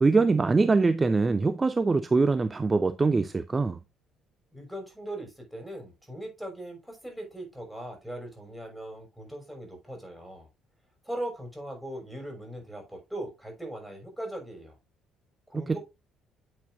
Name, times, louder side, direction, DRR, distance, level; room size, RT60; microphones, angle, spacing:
voice 1, 0.0-3.8 15.5-15.8, right 3 dB, 25° right, 0.6 m, -23 dB
voice 2, 4.5-10.5 11.0-14.8 15.5-15.8, right 1 dB, ahead, 6.0 m, -39 dB
9.3 x 7.8 x 2.5 m
figure-of-eight pair, 50°, 0 cm